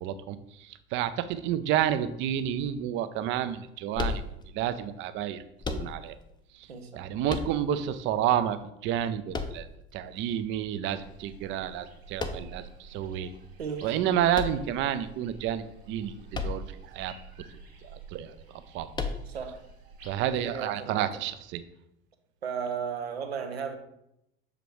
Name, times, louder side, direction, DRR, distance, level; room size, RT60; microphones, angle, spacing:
voice 1, 0.0-4.2 4.5-5.4 5.7-6.1 6.6-6.7 6.9-9.7 9.9-13.3 13.8-16.1 16.4-17.1 18.1-18.3 18.7-18.9 20.0-21.6, right 10 dB, 40° right, 12 dB, 0.5 m, -30 dB
sound 1, 3.9-4.7 5.6-6.3 7.3-8.0 9.3-10.1 12.2-12.7 14.3-15.2 16.3-16.9 17.2-17.3 18.9-19.6, left 4 dB, 15° left, 0.5 m, -34 dB
voice 2, 6.7-7.0 13.6-14.0 19.3-19.6 20.4-21.1 22.4-23.8, right 6 dB, 80° right, 6 dB, 0.7 m, -35 dB
sound 2, 10.9-20.4, right 4 dB, 65° right, 1.3 m, -49 dB
6.7 x 5.0 x 3.1 m, 0.82 s
figure-of-eight pair, 65°, 31 cm